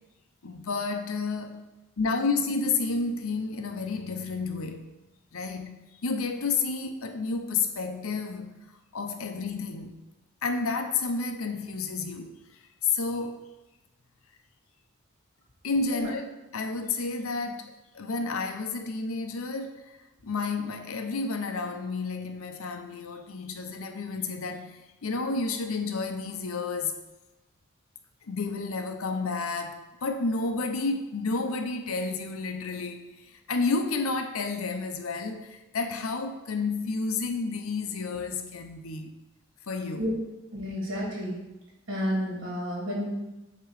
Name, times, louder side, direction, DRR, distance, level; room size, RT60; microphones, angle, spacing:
voice 1, 0.4-1.6 2.0-4.8 5.3-8.6 8.9-9.9 10.4-12.4 12.8-13.4 15.6-16.2 16.5-19.9 20.2-26.9 28.3-33.0 33.5-39.2 39.7-40.1, left 4 dB, 90° left, 5 dB, 0.7 m, -30 dB
voice 2, 40.5-41.4 41.9-43.1, equal, 65° right, -4 dB, 2.3 m, -30 dB
8.0 x 3.0 x 4.8 m, 1.0 s
head